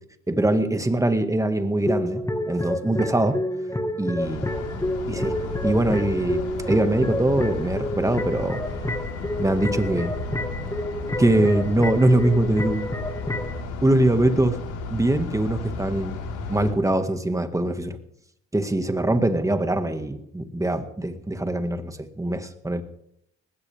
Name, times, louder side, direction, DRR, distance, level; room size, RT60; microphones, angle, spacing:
voice 1, 0.3-3.4 4.0-4.5 5.1-8.7 9.4-10.1 11.2-12.9 13.8-14.6 14.9-16.2 16.5-18.0 18.5-22.8, right 1 dB, 10° right, 8 dB, 2.0 m, -23 dB
sound 1, 1.8-13.6, left 1 dB, 10° left, 2.0 m, -29 dB
sound 2, 4.2-16.7, left 3 dB, 85° left, 4.5 m, -34 dB
20.0 x 16.5 x 3.6 m, 0.74 s
cardioid pair, 90°, 30 cm